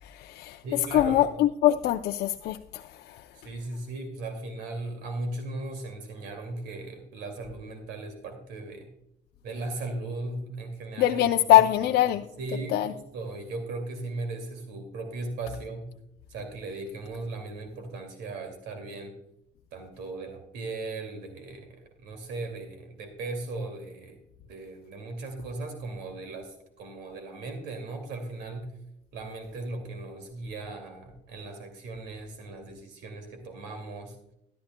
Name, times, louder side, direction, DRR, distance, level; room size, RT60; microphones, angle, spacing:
voice 1, 0.0-3.3 11.0-12.2 12.7-12.9, left 13 dB, 70° left, 5 dB, 0.5 m, -23 dB
voice 2, 0.6-1.2 3.3-8.9 9.4-11.3 12.1-15.9 16.3-19.2 19.7-24.2 24.5-28.7 29.1-34.2, right 2 dB, 85° right, 5 dB, 2.3 m, -37 dB
14.0 x 12.0 x 2.2 m, 0.78 s
cardioid pair, 110°, 17 cm